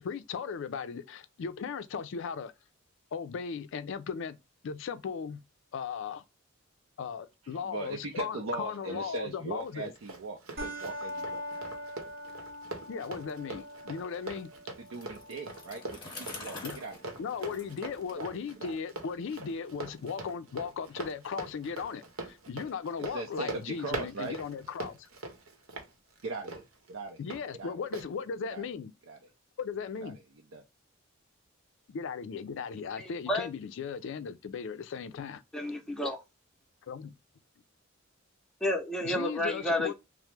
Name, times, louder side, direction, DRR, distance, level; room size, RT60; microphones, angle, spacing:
voice 1, 0.0-2.5 3.1-4.4 4.6-5.4 5.7-6.2 7.0-9.9 12.9-14.5 16.6-16.8 17.2-25.1 27.2-28.9 29.6-30.2 31.9-35.4 36.9-37.2 39.0-39.9, left 6 dB, 65° left, 0.4 m, -37 dB
voice 2, 7.6-11.7 14.8-17.0 17.5-17.6 18.2-18.3 18.6-18.8 19.4-19.5 23.0-24.4 26.2-27.2 27.5-27.7 28.5-28.6 29.1-29.2 30.0-30.1 30.5-30.6, right 2 dB, 70° right, 0.5 m, -39 dB
Run, 9.6-27.4 27.9-28.1, right 2 dB, 90° right, 0.8 m, -43 dB
sound 1, 10.6-19.5, equal, 45° right, 0.9 m, -44 dB
Bicycle, 14.8-18.7, left 3 dB, 20° left, 0.9 m, -47 dB
voice 3, 33.0-33.5 35.5-36.2 38.6-39.9, left 1 dB, 5° left, 0.6 m, -31 dB
2.9 x 2.0 x 3.2 m
head